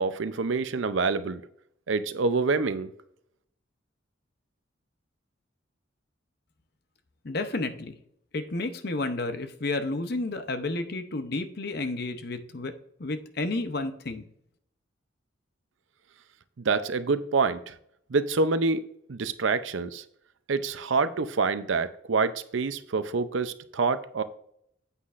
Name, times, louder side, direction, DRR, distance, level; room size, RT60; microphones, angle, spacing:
voice 1, 0.0-1.4 1.9-2.9 16.6-17.7 18.1-18.8 19.1-20.0 20.5-24.2, right 4 dB, 75° right, 12 dB, 0.6 m, -26 dB
voice 2, 7.2-7.9 8.3-12.7 13.0-14.2, left 2 dB, 50° left, 9 dB, 0.7 m, -31 dB
9.5 x 8.3 x 2.5 m, 0.70 s
head